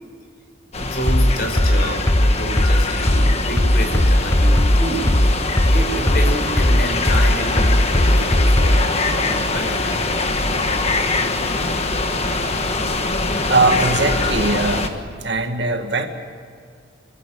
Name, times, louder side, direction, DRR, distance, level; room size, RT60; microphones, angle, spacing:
sound 1, 0.7-14.9, left 3 dB, 30° left, 1.5 m, -23 dB
voice 1, 0.8-5.1 5.6-9.7, right 1 dB, 50° left, 3 dB, 5.3 m, -28 dB
sound 2, 1.1-8.9, left 1 dB, 15° left, 0.6 m, -16 dB
voice 2, 13.5-14.9 15.2-16.1, right 3 dB, 60° right, 5 dB, 2.0 m, -20 dB
29.5 x 13.0 x 9.8 m, 2.3 s
head